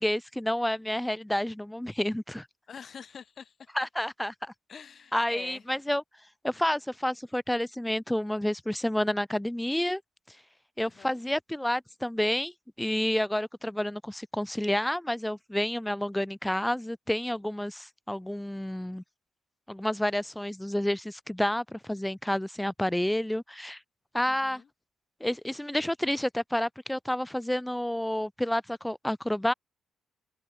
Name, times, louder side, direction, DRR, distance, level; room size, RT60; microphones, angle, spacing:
voice 1, 0.0-2.5 3.7-4.5 5.1-6.0 6.4-10.0 10.8-12.5 12.8-19.0 19.7-23.8 24.1-24.6 25.2-29.5, left 1 dB, 5° left, 0.7 m, -29 dB
voice 2, 2.7-3.7 4.7-5.6 10.8-11.2 24.2-24.7, left 7 dB, 50° left, 3.2 m, -46 dB
cardioid pair, 90°, 0 cm